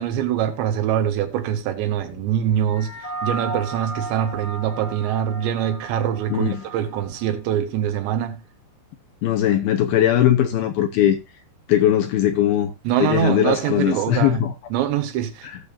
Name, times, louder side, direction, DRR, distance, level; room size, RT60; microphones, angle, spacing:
voice 1, 0.0-8.4 12.8-15.5, right 10 dB, 80° right, 3.5 m, -24 dB
sound 1, 2.7-7.3, right 3 dB, 5° left, 4.5 m, -34 dB
voice 2, 6.3-6.6 9.2-11.2 11.7-12.7 13.0-14.5 15.4-15.6, left 11 dB, 75° left, 2.4 m, -19 dB
18.0 x 7.0 x 2.7 m
omnidirectional pair, 5.2 m